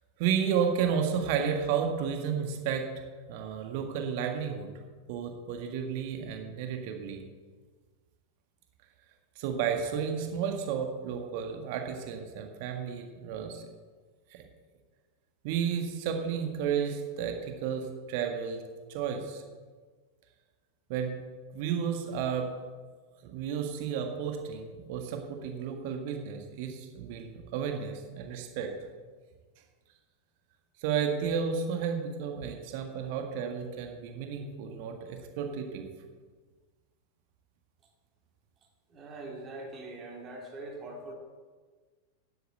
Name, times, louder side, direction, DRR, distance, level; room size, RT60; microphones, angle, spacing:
voice 1, 0.2-2.9 3.3-4.7 5.1-7.2 9.3-13.6 14.3-14.4 15.4-18.6 18.9-19.4 20.9-21.1 21.5-22.5 23.2-28.7 30.8-35.8, right 7 dB, 50° right, 4 dB, 1.7 m, -32 dB
voice 2, 38.9-41.1, right 2 dB, 25° right, 1 dB, 2.5 m, -42 dB
10.5 x 8.5 x 7.9 m, 1.4 s
figure-of-eight pair, 90°, 0 cm